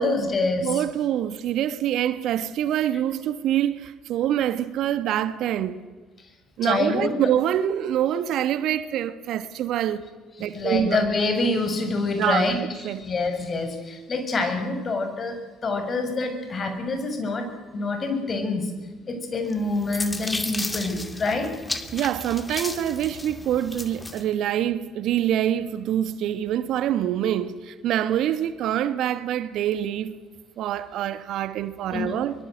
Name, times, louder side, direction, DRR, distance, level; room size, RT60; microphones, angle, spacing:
voice 1, 0.0-0.8 6.6-7.1 10.4-15.4 15.6-18.7 19.1-21.5 31.9-32.2, left 3 dB, 40° left, 6.7 m, -26 dB
voice 2, 0.6-5.8 6.6-10.0 10.4-11.0 12.2-12.6 12.8-13.1 21.9-30.2 30.6-32.3, right 11 dB, 60° right, 1.3 m, -25 dB
sound 1, 19.5-24.2, left 2 dB, 15° left, 2.6 m, -34 dB
23.5 x 23.0 x 8.0 m
hypercardioid pair, 55°, 0 cm